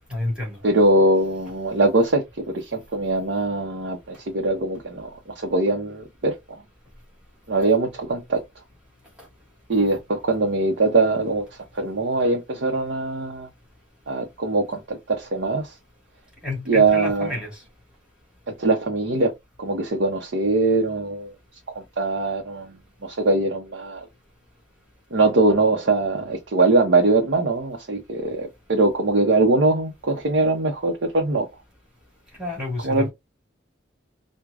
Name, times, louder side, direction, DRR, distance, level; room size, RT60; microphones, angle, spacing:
voice 1, 0.1-0.6 16.4-17.6 32.4-33.1, left 2 dB, 5° right, 1.8 m, -29 dB
voice 2, 0.6-6.3 7.5-8.4 9.7-11.4 11.7-13.5 14.1-15.7 16.7-17.3 18.5-19.3 19.6-21.3 21.7-22.8 23.0-24.1 25.1-31.5 32.8-33.1, right 2 dB, 65° right, 0.7 m, -22 dB
4.7 x 2.1 x 2.4 m
head